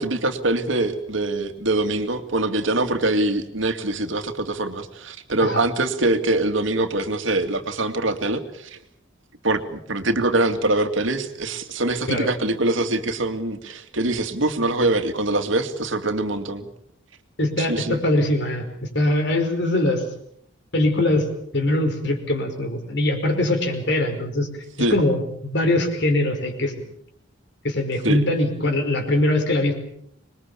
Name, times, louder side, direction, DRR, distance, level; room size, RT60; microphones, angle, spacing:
voice 1, 0.0-8.8 9.4-16.7 17.6-18.0 24.8-25.0 28.0-28.2, right 2 dB, 70° right, 8 dB, 2.3 m, -23 dB
voice 2, 17.4-20.0 20.7-21.2 21.5-24.5 24.9-26.7 27.6-29.7, left 1 dB, 60° left, 6 dB, 5.0 m, -22 dB
26.0 x 21.5 x 7.1 m, 0.70 s
head